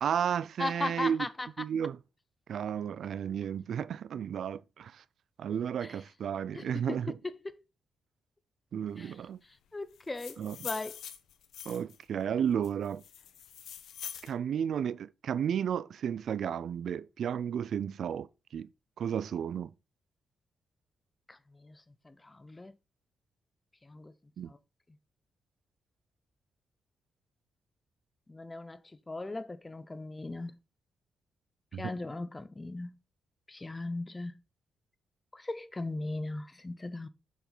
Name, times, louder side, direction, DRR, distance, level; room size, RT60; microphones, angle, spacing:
voice 1, 0.0-1.3 1.6-2.0 2.5-5.0 5.4-7.2 8.7-9.4 10.4-10.6 11.7-13.0 14.2-18.7 19.0-19.7 24.4-24.5 31.7-31.9, right 8 dB, 65° right, 0.3 m, -33 dB
voice 2, 0.6-1.5 5.8-5.9 6.5-7.2 9.0-9.2 9.7-11.0 21.3-22.7 23.8-24.1 24.5-24.6 28.3-28.8 29.1-30.5 31.8-32.9 33.5-34.4 35.3-37.1, left 2 dB, 15° left, 0.7 m, -38 dB
sound 1, 9.9-12.0 12.6-14.3, left 9 dB, 80° left, 0.9 m, -44 dB
7.1 x 5.9 x 3.9 m
cardioid pair, 115°, 0 cm